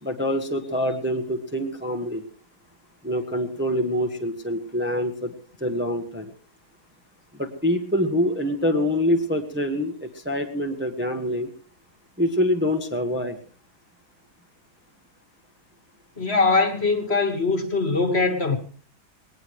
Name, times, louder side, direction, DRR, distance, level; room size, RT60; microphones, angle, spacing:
voice 1, 0.0-2.2 3.0-5.3 5.6-6.3 7.3-11.5 12.2-13.4, left 1 dB, 5° right, 1.3 m, -25 dB
voice 2, 16.2-18.6, left 3 dB, 35° left, 2.0 m, -22 dB
21.0 x 19.0 x 3.2 m
omnidirectional pair, 1.9 m